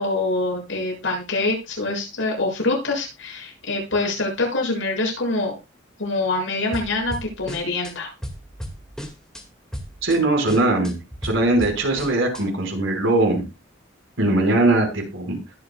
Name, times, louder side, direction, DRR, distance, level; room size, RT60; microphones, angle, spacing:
voice 1, 0.0-5.5 6.0-8.1, left 2 dB, 70° left, -1 dB, 7.1 m, -25 dB
sound 1, 6.7-7.9 8.2-9.4 9.7-10.2 10.5-12.4, equal, 5° left, 2.1 m, -34 dB
voice 2, 10.0-10.9 11.2-13.4 14.2-15.4, right 2 dB, 75° right, 0 dB, 5.5 m, -20 dB
21.0 x 7.3 x 2.4 m, 0.25 s
head